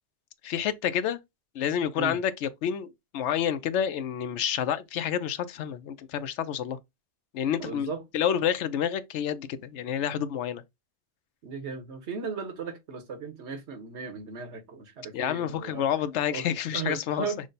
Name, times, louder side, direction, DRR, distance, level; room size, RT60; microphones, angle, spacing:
voice 1, 0.4-1.2 1.5-6.8 7.3-10.6 15.1-17.3, left 9 dB, 85° left, 0.9 m, -29 dB
voice 2, 7.6-8.0 11.4-15.8 16.3-16.5 16.7-17.4, right 5 dB, 75° right, 1.3 m, -36 dB
6.2 x 2.2 x 3.9 m
omnidirectional pair, 1.2 m